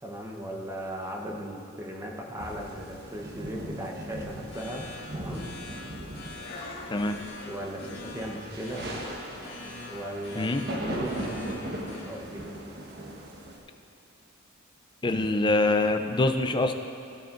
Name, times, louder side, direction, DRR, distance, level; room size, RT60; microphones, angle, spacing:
voice 1, 0.0-5.5 7.4-8.9 9.6-10.5 10.8-12.4, right 1 dB, 15° right, -1 dB, 1.0 m, -37 dB
sound 1, 2.4-13.6, right 1 dB, 50° right, 1.2 m, -39 dB
sound 2, 3.8-13.4, left 2 dB, 55° left, 1.8 m, -44 dB
voice 2, 15.0-16.8, left 2 dB, 20° left, 6 dB, 0.4 m, -24 dB
17.0 x 10.0 x 2.6 m, 2.7 s
head